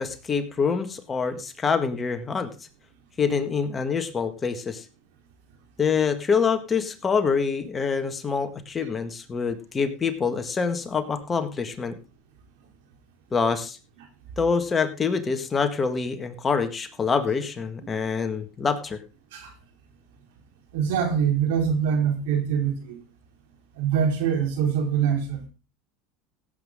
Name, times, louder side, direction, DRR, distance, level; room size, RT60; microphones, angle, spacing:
voice 1, 0.0-2.5 3.2-4.8 5.8-12.0 13.3-13.8 14.4-19.0, left 5 dB, 25° left, 1.7 m, -26 dB
voice 2, 20.7-23.0 23.8-25.4, right 7 dB, 80° right, 3.8 m, -24 dB
16.5 x 8.2 x 3.7 m
supercardioid pair, 110°, 0 cm